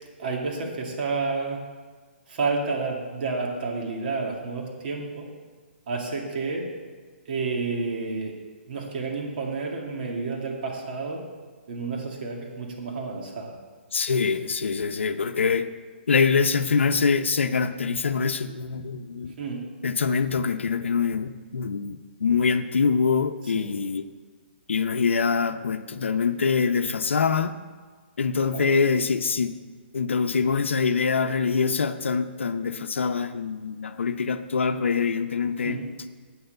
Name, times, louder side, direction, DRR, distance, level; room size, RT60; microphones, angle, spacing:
voice 1, 0.2-1.6 2.3-5.3 5.9-6.7 7.3-8.3 8.7-11.3 11.7-13.6 19.4-19.7 23.5-23.8 28.5-28.7 35.7-35.9, right 4 dB, 50° right, 0 dB, 2.2 m, -30 dB
voice 2, 13.9-15.7 16.1-19.3 19.8-24.0 24.7-27.5 28.2-29.6 29.9-35.8, left 5 dB, 85° left, 8 dB, 0.6 m, -24 dB
8.6 x 6.7 x 7.8 m, 1.5 s
hypercardioid pair, 155°, 6 cm